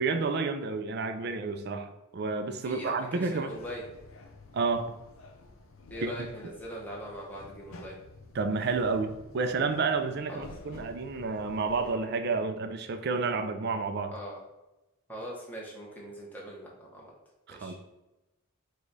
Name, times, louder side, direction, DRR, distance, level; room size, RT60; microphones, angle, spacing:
voice 1, 0.0-3.5 4.5-4.9 6.0-6.3 8.3-14.1 17.5-17.7, right 4 dB, 50° right, 8 dB, 0.4 m, -30 dB
voice 2, 2.6-3.9 5.9-8.0 10.3-10.8 14.1-14.4 15.1-17.1 17.5-17.7, equal, 10° left, -4 dB, 0.9 m, -41 dB
sound 1, 3.5-12.0, left 2 dB, 70° left, 0.5 m, -51 dB
4.8 x 2.3 x 4.0 m, 1.0 s
head